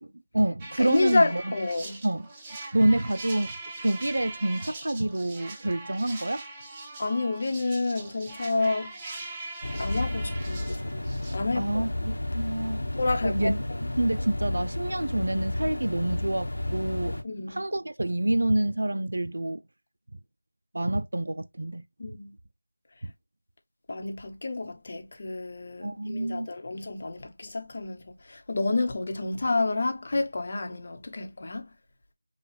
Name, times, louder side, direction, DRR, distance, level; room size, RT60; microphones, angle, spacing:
voice 1, 0.0-1.6 2.0-2.3 2.7-6.4 11.6-12.8 13.2-13.6 14.0-17.2 17.5-19.6 20.7-21.8 25.8-26.5, right 1 dB, 65° right, 0.5 m, -27 dB
sound 1, 0.6-11.4, right 2 dB, 15° right, 0.6 m, -41 dB
voice 2, 0.8-2.0 7.0-8.9 9.8-10.9 11.3-11.9 13.0-13.5 17.2-17.6 22.0-22.3 23.9-28.0 28.3-31.7, left 3 dB, 35° left, 0.9 m, -29 dB
sound 2, 9.6-17.2, left 1 dB, 75° left, 1.1 m, -32 dB
5.5 x 2.3 x 3.3 m
figure-of-eight pair, 170°, 0 cm